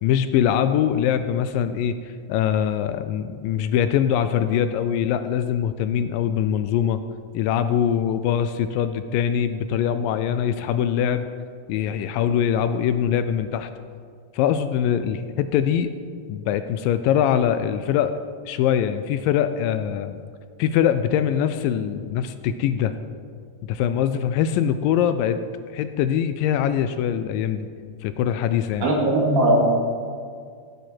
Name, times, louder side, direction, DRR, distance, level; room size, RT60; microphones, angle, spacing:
voice 1, 0.0-7.0 7.3-11.3 11.7-13.7 14.3-15.9 16.3-18.1 18.5-20.2 20.6-22.9 23.7-25.4 25.7-27.7 28.0-28.9, left 9 dB, 80° left, 10 dB, 2.1 m, -23 dB
voice 2, 28.8-29.6, right 1 dB, 75° right, -2 dB, 3.9 m, -19 dB
17.0 x 9.4 x 4.5 m, 2.1 s
omnidirectional pair, 4.2 m